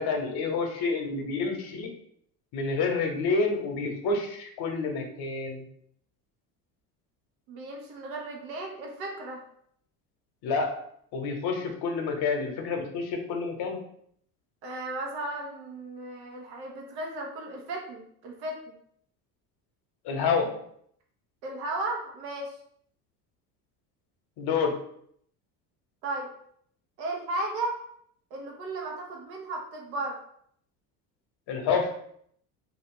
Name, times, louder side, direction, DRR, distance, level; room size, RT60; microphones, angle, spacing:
voice 1, 0.0-1.9 2.5-5.6 10.4-10.7 11.1-13.8 20.0-20.5 24.4-24.7 31.5-31.9, left 4 dB, 50° left, 3 dB, 0.9 m, -28 dB
voice 2, 7.5-9.4 14.6-18.6 21.4-22.5 26.0-26.3 27.0-27.8 28.3-30.2, right 2 dB, 80° right, 0 dB, 1.0 m, -35 dB
2.7 x 2.3 x 3.6 m, 0.67 s
hypercardioid pair, 75°, 50 cm